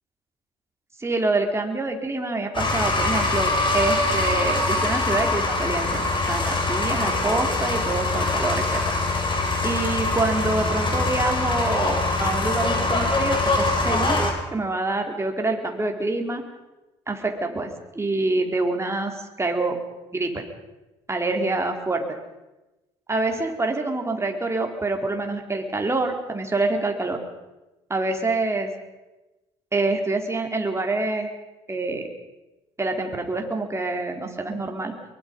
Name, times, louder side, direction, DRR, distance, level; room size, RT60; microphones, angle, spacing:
voice 1, 1.0-9.0 9.6-16.4 17.1-19.8 20.1-20.4 21.1-22.0 23.1-27.2 27.9-28.7 29.7-31.3 31.7-32.1 32.8-34.9, right 2 dB, 20° right, 3 dB, 4.0 m, -26 dB
sound 1, 2.5-14.3, left 2 dB, 35° left, 5.4 m, -23 dB
23.0 x 21.5 x 5.5 m, 1.1 s
hypercardioid pair, 60°, 15 cm